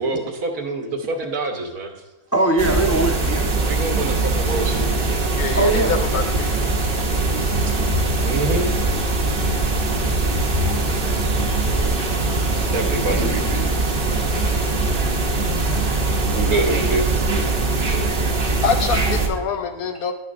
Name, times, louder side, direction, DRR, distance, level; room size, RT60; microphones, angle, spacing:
voice 1, 0.0-1.9 3.6-5.2 7.7-10.6 12.7-13.6 15.5-17.0, right 2 dB, 75° right, 3 dB, 1.6 m, -28 dB
voice 2, 2.3-3.5 5.5-5.9 8.1-8.3 8.7-8.8 10.4-10.8 13.0-13.6 14.1-14.2 14.9-15.1 15.8-16.2 18.0-18.6 19.0-19.2 19.6-19.7, right 2 dB, 10° left, 0 dB, 0.8 m, -24 dB
sound 1, 2.6-19.3, right 2 dB, 45° right, 1.0 m, -21 dB
voice 3, 5.3-6.7 18.6-20.1, left 6 dB, 75° left, 7 dB, 1.2 m, -25 dB
10.0 x 9.4 x 2.5 m, 1.0 s
omnidirectional pair, 1.6 m